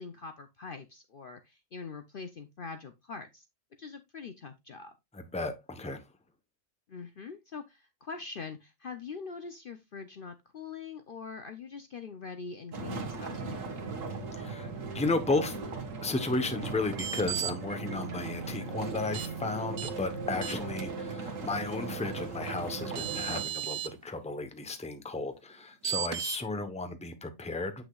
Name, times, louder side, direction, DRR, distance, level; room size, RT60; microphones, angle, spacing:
voice 1, 0.0-3.4 3.8-4.9 6.9-13.6, left 5 dB, 50° left, 0.8 m, -43 dB
voice 2, 5.1-6.0 14.3-14.7 14.9-15.6 16.0-27.7, left 3 dB, 5° left, 0.8 m, -34 dB
sound 1, 12.7-23.4, right 3 dB, 70° right, 1.8 m, -38 dB
sound 2, 16.9-17.5 19.1-19.3 19.8-19.9 20.4-20.8 22.5-22.6 22.9-23.9 25.8-26.4, right 11 dB, 90° right, 1.1 m, -34 dB
8.2 x 6.1 x 2.4 m
omnidirectional pair, 1.4 m